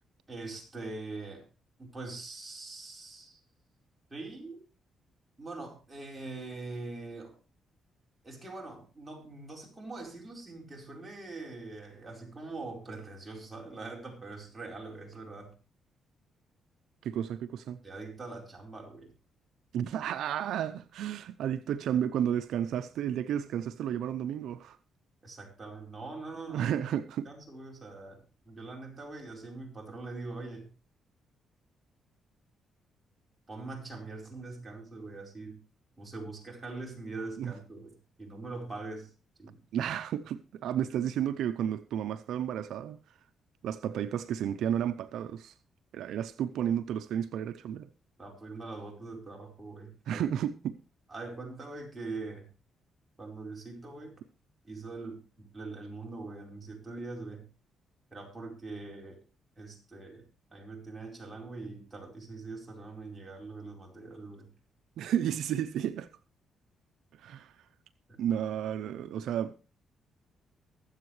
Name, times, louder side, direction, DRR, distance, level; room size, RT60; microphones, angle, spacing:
voice 1, 0.3-1.4 1.8-3.4 4.1-4.6 5.4-7.4 8.2-15.5 17.8-19.1 25.2-26.7 27.2-30.7 33.5-35.6 36.0-39.1 39.4-39.6 48.2-50.2 51.1-52.5 53.2-54.2 54.6-57.5 58.1-59.2 59.6-60.2 60.5-64.5 68.1-68.2, right 3 dB, 15° right, 4.7 m, -43 dB
voice 2, 17.0-17.8 19.7-24.8 26.5-27.3 37.4-37.5 39.7-43.0 43.6-45.5 45.9-47.9 50.1-50.8 65.0-66.1 67.2-67.5 68.2-69.5, right 9 dB, 80° right, 0.6 m, -32 dB
23.5 x 8.0 x 3.2 m
cardioid pair, 110°, 0 cm